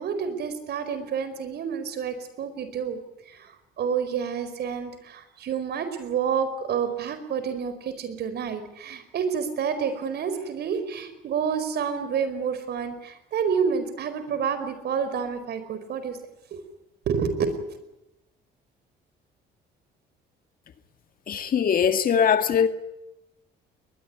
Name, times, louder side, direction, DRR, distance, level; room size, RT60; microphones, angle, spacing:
voice 1, 0.0-3.0 3.3-16.2 17.1-17.7, right 6 dB, 60° right, 4.9 m, -29 dB
voice 2, 21.3-22.7, left 7 dB, 50° left, 2.0 m, -21 dB
21.5 x 21.0 x 9.7 m
cardioid pair, 95°, 19 cm